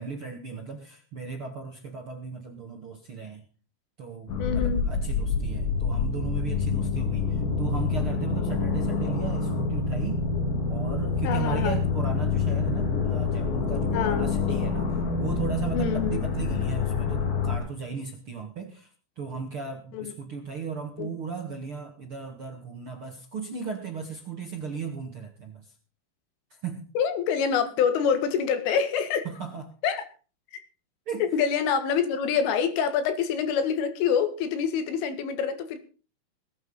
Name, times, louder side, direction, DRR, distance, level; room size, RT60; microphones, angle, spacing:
voice 1, 0.0-3.4 4.0-10.3 10.7-18.9 19.1-25.7 26.6-26.9 29.2-29.8 31.0-31.3, right 5 dB, 60° right, 1.4 m, -36 dB
sound 1, 4.3-17.6, left 4 dB, 55° left, 4.3 m, -27 dB
voice 2, 4.4-4.8 11.2-11.8 13.9-14.3 15.7-16.3 19.9-20.1 21.0-21.1 27.0-29.3 29.8-30.1 30.5-30.6 31.2-35.8, left 7 dB, 80° left, 4.4 m, -26 dB
20.0 x 9.0 x 5.6 m
omnidirectional pair, 5.6 m